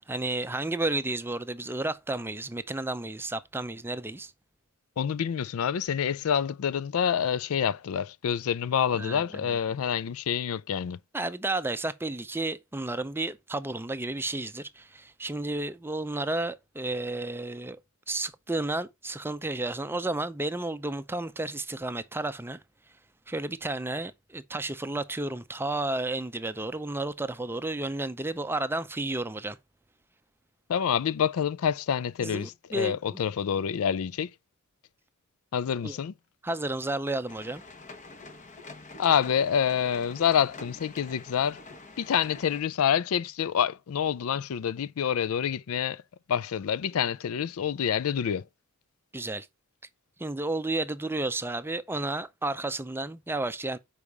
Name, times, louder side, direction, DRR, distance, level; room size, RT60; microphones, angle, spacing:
voice 1, 0.0-4.3 8.9-9.6 11.1-17.8 18.1-22.6 23.3-29.6 32.2-33.2 35.8-35.9 36.4-37.6 49.1-49.5 50.2-53.8, right 2 dB, 10° right, 0.5 m, -32 dB
voice 2, 5.0-11.0 30.7-34.3 35.5-36.1 39.0-41.6 42.0-46.0 46.3-48.4, left 8 dB, 70° left, 0.4 m, -27 dB
sound 1, 37.3-42.6, left 3 dB, 35° left, 1.1 m, -47 dB
7.0 x 4.9 x 4.6 m
head